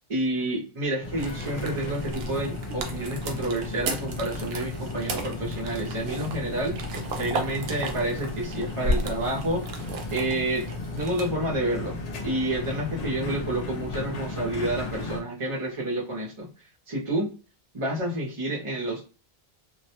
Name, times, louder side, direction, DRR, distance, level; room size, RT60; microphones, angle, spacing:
voice 1, 0.1-6.8 7.2-9.8 10.1-10.6 10.9-16.5 16.9-17.3 17.7-19.2, right 1 dB, 40° right, -4 dB, 0.5 m, -29 dB
sound 1, 1.0-15.2, left 2 dB, 55° left, 0.5 m, -35 dB
sound 2, 1.2-11.3, right 1 dB, 75° right, 0.8 m, -35 dB
2.2 x 2.1 x 2.8 m, 0.34 s
omnidirectional pair, 1.0 m